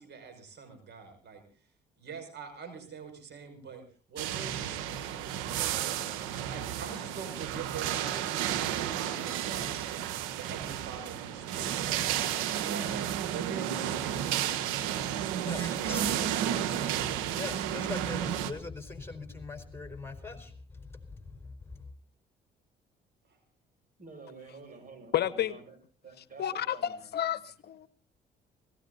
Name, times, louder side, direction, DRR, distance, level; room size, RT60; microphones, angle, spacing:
voice 1, 0.0-1.4 2.0-3.8 4.1-5.9 6.5-12.2 12.6-17.1 23.3-23.4, right 6 dB, 60° right, 6.0 m, -45 dB
sound 1, 4.2-18.5, right 10 dB, 85° right, 1.3 m, -32 dB
voice 2, 15.5-16.1 17.4-21.8, left 3 dB, 10° left, 4.1 m, -41 dB
voice 3, 24.0-25.8 26.0-27.1, right 4 dB, 45° right, 6.9 m, -49 dB
voice 4, 25.1-25.6 26.4-27.9, left 11 dB, 55° left, 0.9 m, -31 dB
19.0 x 17.5 x 4.1 m
hypercardioid pair, 55°, 20 cm